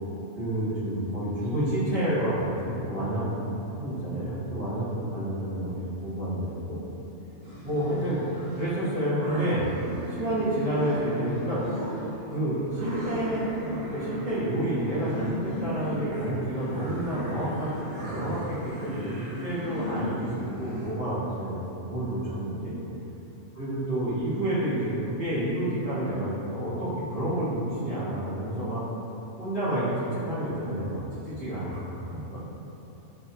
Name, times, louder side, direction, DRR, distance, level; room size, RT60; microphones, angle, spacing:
voice 1, 0.4-3.5 3.8-6.8 7.6-8.2 8.5-9.6 10.1-11.6 12.3-22.8 23.6-28.8 29.4-32.4, right 1 dB, 50° right, -17 dB, 1.4 m, -29 dB
sound 1, 7.4-20.9, equal, 90° right, 1.8 m, -37 dB
4.3 x 2.5 x 2.6 m, 3.0 s
omnidirectional pair, 1.5 m